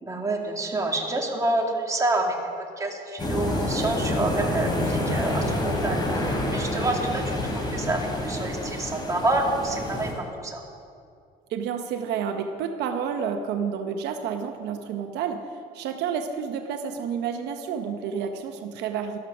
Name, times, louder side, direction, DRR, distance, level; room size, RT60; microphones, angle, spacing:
voice 1, 0.0-2.4 2.8-10.6, right 2 dB, 20° right, 0 dB, 2.3 m, -28 dB
sound 1, 3.2-10.1, left 1 dB, 25° left, 3.2 m, -27 dB
voice 2, 11.5-19.2, right 7 dB, 85° right, 6 dB, 1.0 m, -30 dB
13.5 x 12.5 x 6.0 m, 2.3 s
cardioid pair, 110°, 17 cm